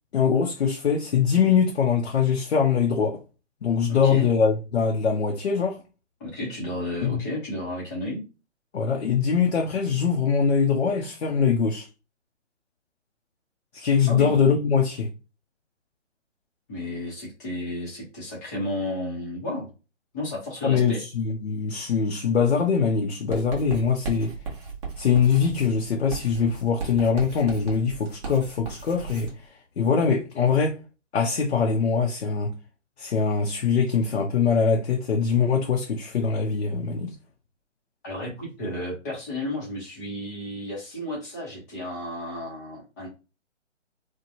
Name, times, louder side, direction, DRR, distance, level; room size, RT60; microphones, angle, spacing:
voice 1, 0.1-3.2 3.6-5.8 7.0-7.2 8.7-11.9 13.7-15.1 20.6-24.3 25.0-29.3 29.8-30.8 31.1-32.5 33.0-37.1, left 6 dB, 60° left, 0.7 m, -23 dB
voice 2, 3.9-4.3 6.2-8.2 14.1-14.4 16.7-19.7 20.1-21.0 38.0-43.1, left 1 dB, 15° left, 0.7 m, -32 dB
Writing, 23.3-29.4, right 5 dB, 25° right, 0.9 m, -36 dB
3.0 x 2.2 x 2.6 m
figure-of-eight pair, 150°, 37 cm